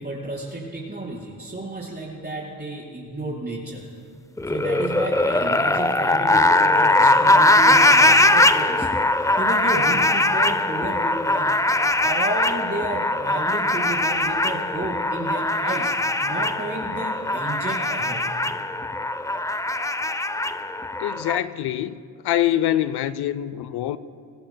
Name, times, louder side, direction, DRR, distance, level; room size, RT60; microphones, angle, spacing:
voice 1, 0.0-3.8 4.5-8.9 9.4-11.5 12.0-18.2, right 2 dB, 25° right, 4.8 m, -32 dB
sound 1, 4.4-21.4, left 2 dB, 10° left, 0.5 m, -20 dB
voice 2, 21.0-24.0, left 12 dB, 70° left, 0.7 m, -24 dB
26.0 x 18.5 x 2.3 m
supercardioid pair, 60°, 41 cm